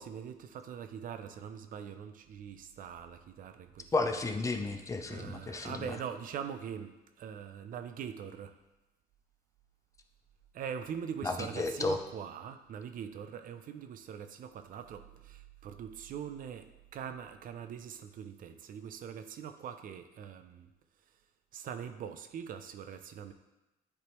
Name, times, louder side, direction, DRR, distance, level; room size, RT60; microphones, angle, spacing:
voice 1, 0.0-3.9 5.1-8.5 10.5-16.7 16.9-20.7 21.5-23.3, right 8 dB, 55° right, 8 dB, 0.5 m, -42 dB
voice 2, 3.9-5.9 11.2-12.0, left 3 dB, 20° left, 5 dB, 0.5 m, -33 dB
9.6 x 3.4 x 3.0 m, 1.0 s
cardioid pair, 110°, 17 cm